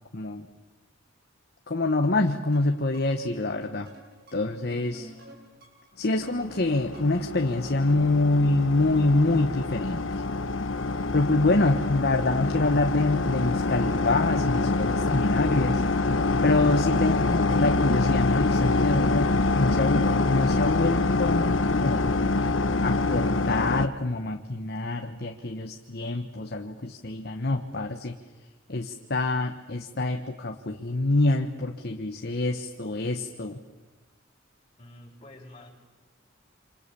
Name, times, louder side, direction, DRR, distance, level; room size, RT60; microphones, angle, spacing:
voice 1, 0.1-0.5 1.7-3.9 4.3-5.0 6.0-10.2 11.1-15.8 16.4-22.1 22.8-28.1 28.7-33.6, left 2 dB, 55° left, 4 dB, 1.3 m, -26 dB
sound 1, 2.0-7.3, equal, 55° right, 7.0 m, -52 dB
voice 2, 4.6-5.3 34.8-35.7, left 1 dB, 30° left, -2 dB, 6.4 m, -47 dB
sound 2, 6.3-23.9, left 3 dB, 75° left, 1.1 m, -25 dB
28.5 x 26.5 x 7.0 m, 1.3 s
head